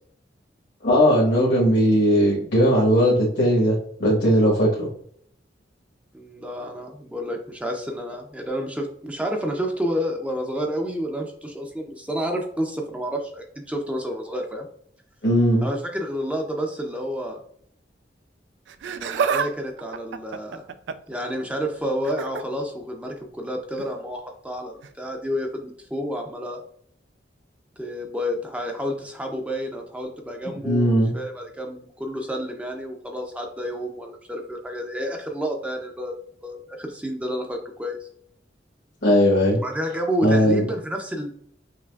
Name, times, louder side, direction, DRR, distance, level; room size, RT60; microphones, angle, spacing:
voice 1, 0.8-4.9 15.2-15.7 30.4-31.1 39.0-39.6 40.2-40.6, equal, 75° left, -6 dB, 1.3 m, -18 dB
voice 2, 6.1-14.7 15.6-17.4 18.9-20.7 21.1-26.6 27.8-36.1 36.4-38.1 39.5-41.3, equal, 5° right, 2 dB, 0.5 m, -30 dB
Laughter, 18.7-19.5 19.8-21.1 22.0-22.4 23.7-23.9 24.8-24.9, right 6 dB, 75° right, 0.3 m, -27 dB
5.8 x 2.9 x 2.3 m, 0.64 s
head